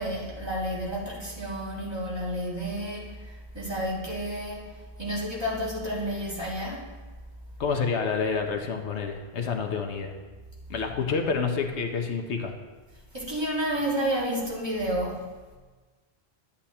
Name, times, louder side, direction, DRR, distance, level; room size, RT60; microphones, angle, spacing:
voice 1, 0.0-4.7 5.0-6.9 13.1-15.2, equal, 25° right, -6 dB, 1.9 m, -30 dB
voice 2, 7.6-10.1 10.7-12.5, left 5 dB, 80° left, 4 dB, 1.1 m, -28 dB
11.5 x 8.5 x 2.9 m, 1.3 s
omnidirectional pair, 1.1 m